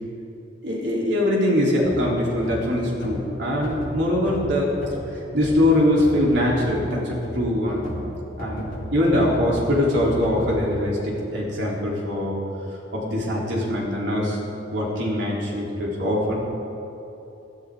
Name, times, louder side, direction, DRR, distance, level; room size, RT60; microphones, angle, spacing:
voice 1, 0.6-4.7 5.1-7.9 8.4-12.4 12.7-14.4 14.7-16.3, left 1 dB, 70° right, -4 dB, 3.9 m, -23 dB
sound 1, 1.8-10.6, equal, 50° left, 4.5 m, -34 dB
22.5 x 13.5 x 3.9 m, 2.9 s
head